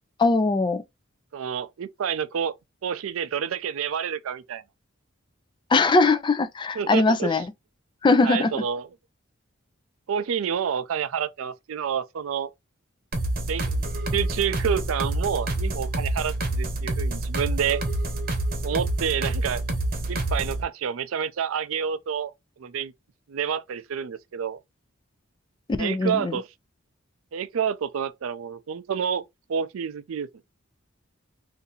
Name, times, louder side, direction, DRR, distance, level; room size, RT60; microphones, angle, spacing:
voice 1, 0.2-0.8 5.7-7.5 8.0-8.6 25.8-26.4, left 3 dB, 25° left, 0.3 m, -21 dB
voice 2, 1.3-2.5 2.8-4.6 6.8-7.4 8.2-8.9 10.1-12.5 13.5-13.8 14.1-17.8 18.6-19.6 20.1-22.3 22.6-22.9 23.3-24.6 25.8-26.5 27.3-29.2 29.5-30.3, right 7 dB, 85° right, 0.4 m, -28 dB
sound 1, 13.1-20.6, right 1 dB, 45° right, 0.8 m, -27 dB
2.7 x 2.6 x 3.9 m
head